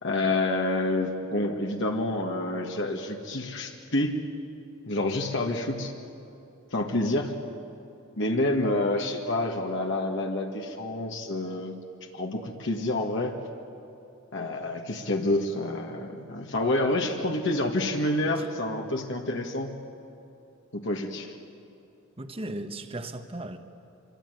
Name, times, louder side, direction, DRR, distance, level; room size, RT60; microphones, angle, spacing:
voice 1, 0.0-4.2 4.9-5.9 6.7-7.3 8.2-11.7 12.1-13.3 14.3-19.7 20.7-21.3, left 2 dB, 60° left, 2 dB, 1.9 m, -28 dB
voice 2, 22.2-23.6, right 1 dB, 30° right, 7 dB, 1.2 m, -36 dB
26.5 x 24.0 x 9.3 m, 2.8 s
head